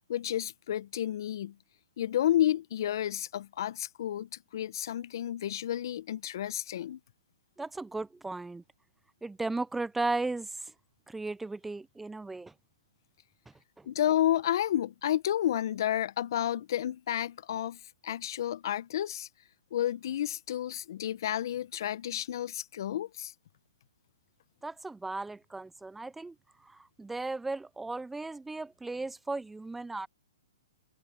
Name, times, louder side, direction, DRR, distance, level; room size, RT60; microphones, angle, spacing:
voice 1, 0.1-1.5 2.0-7.0 13.8-19.3 19.7-23.3, left 11 dB, 60° left, 1.2 m, -31 dB
voice 2, 7.6-8.6 9.2-10.7 11.1-12.5 13.8-13.9 24.6-26.3 26.6-30.1, right 3 dB, 5° right, 0.5 m, -36 dB
hypercardioid pair, 125°, 2 cm